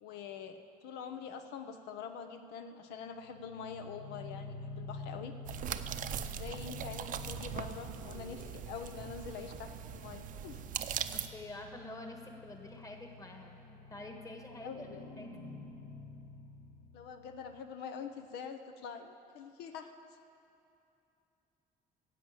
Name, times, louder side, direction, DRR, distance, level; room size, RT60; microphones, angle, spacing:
voice 1, 0.0-5.4 6.2-10.6 14.4-15.1 16.9-19.9, left 6 dB, 85° left, 7 dB, 0.7 m, -45 dB
sound 1, 3.1-17.7, left 3 dB, 60° left, 1.2 m, -49 dB
sound 2, 5.4-11.3, right 10 dB, 55° right, 0.6 m, -40 dB
voice 2, 11.1-14.9 15.2-15.3, left 2 dB, 20° left, 3 dB, 1.4 m, -47 dB
11.0 x 7.6 x 8.7 m, 2.7 s
cardioid pair, 110°, 17 cm